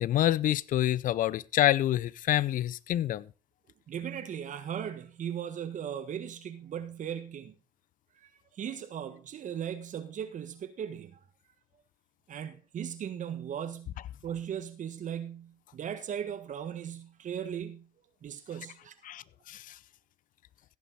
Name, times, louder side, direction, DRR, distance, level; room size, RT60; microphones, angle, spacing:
voice 1, 0.0-3.3 19.0-19.7, left 13 dB, 55° left, 0.6 m, -27 dB
voice 2, 3.9-7.5 8.6-11.2 12.3-17.9 18.2-18.9, right 9 dB, 50° right, 1.5 m, -38 dB
16.0 x 7.1 x 4.1 m
hypercardioid pair, 65°, 16 cm